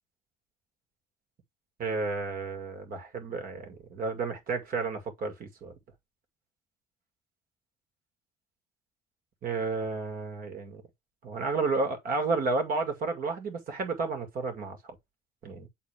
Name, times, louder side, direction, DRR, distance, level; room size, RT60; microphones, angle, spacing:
voice 1, 1.8-5.7 9.4-10.8 11.2-15.0 15.4-15.7, right 3 dB, 55° right, 2.2 m, -32 dB
7.3 x 4.2 x 3.4 m
cardioid pair, 110°, 17 cm